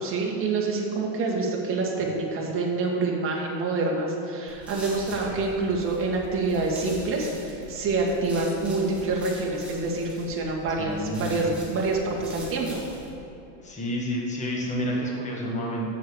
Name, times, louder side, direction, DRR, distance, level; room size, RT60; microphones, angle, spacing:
voice 1, 0.0-12.8, right 3 dB, 30° right, -2 dB, 1.7 m, -27 dB
sound 1, 4.5-13.1, equal, 5° right, 1.8 m, -43 dB
voice 2, 10.8-11.4 13.6-15.9, equal, 15° left, -2 dB, 1.4 m, -30 dB
7.6 x 6.8 x 7.2 m, 2.8 s
supercardioid pair, 145°, 46 cm